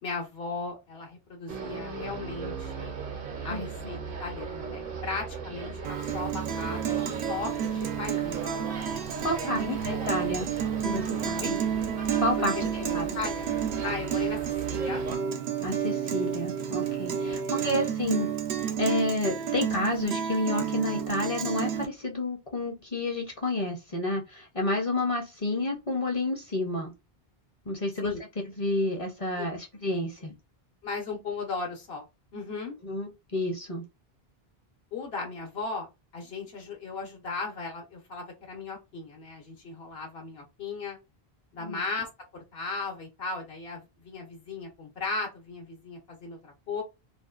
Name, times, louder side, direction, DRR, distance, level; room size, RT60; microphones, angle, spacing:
voice 1, 0.0-2.9 3.4-8.5 9.2-9.8 10.2-10.5 11.4-11.6 12.4-13.5 13.8-15.0 17.1-17.9 28.0-28.2 29.4-29.5 29.9-30.1 30.8-32.1 32.3-32.8 34.9-35.9 36.1-41.0 41.5-46.8, left 4 dB, 75° left, 1.0 m, -37 dB
sound 1, 1.5-15.2, right 4 dB, 65° right, 0.8 m, -38 dB
Guitar, 5.8-21.9, right 9 dB, 90° right, 0.8 m, -31 dB
voice 2, 9.2-10.5 10.8-11.6 12.2-13.2 15.6-18.3 18.6-26.9 27.7-28.1 28.6-30.3 32.8-33.8 41.6-41.8, left 2 dB, 40° left, 0.6 m, -30 dB
2.5 x 2.1 x 2.3 m
omnidirectional pair, 1.0 m